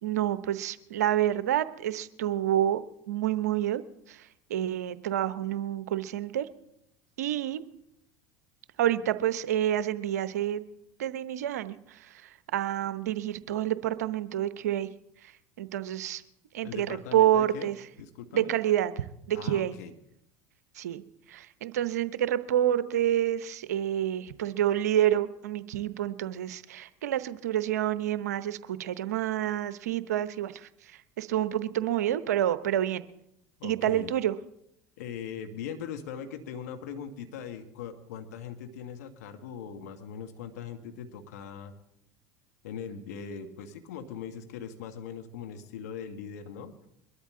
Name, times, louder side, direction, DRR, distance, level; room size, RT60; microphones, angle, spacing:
voice 1, 0.0-6.5 7.2-7.6 8.8-10.6 11.0-14.9 15.2-15.3 15.6-16.2 16.5-17.8 18.3-19.8 20.7-21.0 21.3-33.1 33.6-34.4, right 11 dB, 85° right, 14 dB, 0.8 m, -28 dB
voice 2, 16.6-17.7 18.0-18.5 19.3-19.9 33.6-34.1 35.0-41.7 42.6-46.7, left 7 dB, 80° left, 6 dB, 1.7 m, -40 dB
22.5 x 13.0 x 3.8 m, 0.77 s
hypercardioid pair, 85°, 9 cm